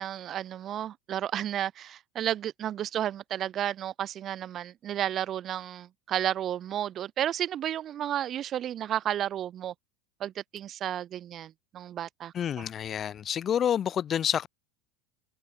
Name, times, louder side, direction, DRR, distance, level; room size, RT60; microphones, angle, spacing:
voice 1, 0.0-9.7 10.2-12.7, right 11 dB, 40° right, 3.0 m, -32 dB
voice 2, 12.3-14.5, left 9 dB, 35° left, 2.5 m, -28 dB
hypercardioid pair, 80°, 0 cm